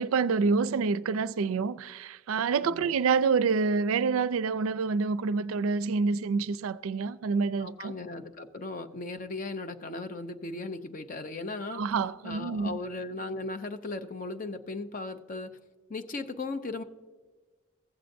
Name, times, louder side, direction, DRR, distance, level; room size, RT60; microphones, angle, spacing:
voice 1, 0.0-8.0 11.7-12.7, right 5 dB, 85° right, 0.4 m, -27 dB
voice 2, 7.6-11.8 12.2-15.6 15.9-16.8, left 2 dB, 40° left, 0.5 m, -37 dB
15.0 x 7.7 x 2.6 m
head